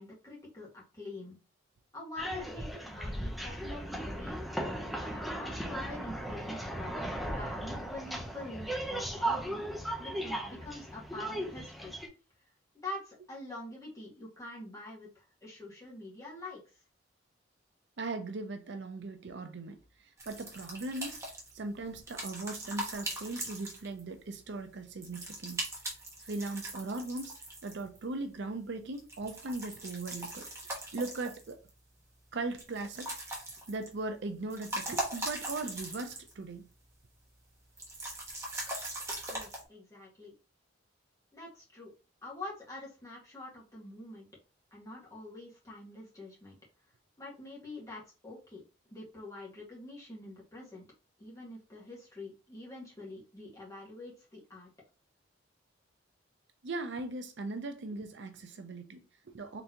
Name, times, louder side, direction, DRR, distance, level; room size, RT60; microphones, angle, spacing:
voice 1, 0.0-1.4 1.9-4.4 5.0-9.6 10.0-12.0 12.7-16.6 39.3-40.3 41.3-41.9 42.2-44.3 44.7-46.6 47.2-48.6 48.9-50.8 51.2-54.7, left 2 dB, 15° left, 1.6 m, -45 dB
sound 1, 2.2-12.1, right 1 dB, ahead, 0.8 m, -37 dB
voice 2, 18.0-21.2 21.5-25.7 26.2-27.3 27.6-31.6 32.3-33.1 33.7-36.7 56.6-59.6, right 3 dB, 65° right, 0.6 m, -39 dB
sound 2, 20.2-24.2 25.0-28.0 28.9-31.7 32.6-34.0 34.4-36.4 36.7-36.8 37.8-39.6, right 1 dB, 15° right, 1.2 m, -40 dB
4.0 x 3.4 x 2.9 m
head